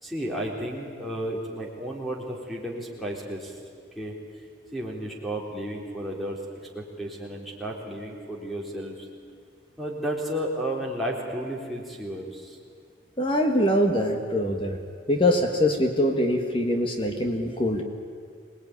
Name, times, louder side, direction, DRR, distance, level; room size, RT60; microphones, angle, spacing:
voice 1, 0.0-3.6 4.0-4.1 4.7-9.1 9.8-12.6, right 1 dB, ahead, -1 dB, 3.8 m, -33 dB
voice 2, 13.2-14.8 15.1-17.8, left 1 dB, 30° left, 4 dB, 1.7 m, -23 dB
26.0 x 19.5 x 9.7 m, 2.2 s
head